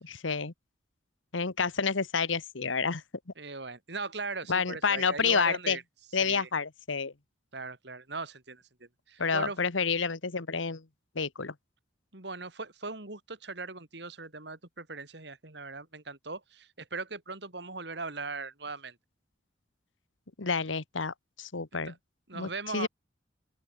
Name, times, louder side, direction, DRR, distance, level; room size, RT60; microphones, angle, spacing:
voice 1, 0.0-0.5 1.3-3.0 4.5-5.8 6.1-7.1 9.2-10.8 11.1-11.5 20.4-21.9 22.3-22.9, left 5 dB, 90° left, 1.3 m, -29 dB
voice 2, 3.4-5.8 6.2-6.5 7.5-9.6 12.1-19.0 21.7-22.0 22.3-22.9, right 3 dB, 60° right, 2.8 m, -39 dB
open air
head